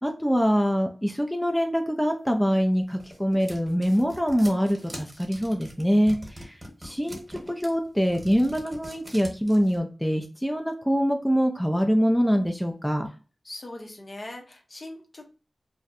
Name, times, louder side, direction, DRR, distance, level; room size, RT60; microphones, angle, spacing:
voice 1, 0.0-6.6 6.8-13.1, equal, ahead, 3 dB, 0.3 m, -24 dB
sound 1, 2.5-9.8, equal, 20° right, 1.0 m, -43 dB
voice 2, 13.4-15.2, left 1 dB, 50° left, 3 dB, 0.6 m, -41 dB
2.6 x 2.0 x 2.4 m, 0.35 s
wide cardioid pair, 65°, 0 cm